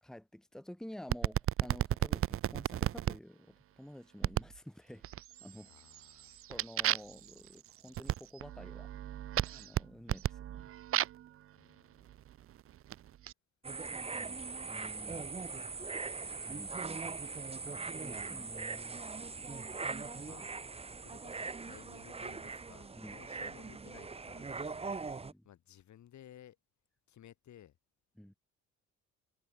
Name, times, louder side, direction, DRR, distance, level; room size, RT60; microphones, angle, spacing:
voice 1, 0.0-5.0 5.4-5.7 6.5-8.9 9.4-10.7 13.9-15.3 16.4-19.0 23.0-23.2 25.2-25.5 28.2-28.3, left 1 dB, ahead, 1.4 m, -51 dB
sound 1, 1.1-3.2 4.2-4.6 5.0-5.5 5.9-11.3 12.1-13.3, right 12 dB, 45° right, 0.4 m, -34 dB
voice 2, 5.7-6.4 11.5-12.1 19.6-26.6 27.1-27.8, left 11 dB, 70° left, 4.9 m, -58 dB
sound 2, 13.6-25.3, right 4 dB, 20° right, 0.9 m, -41 dB
cardioid pair, 90°, 30 cm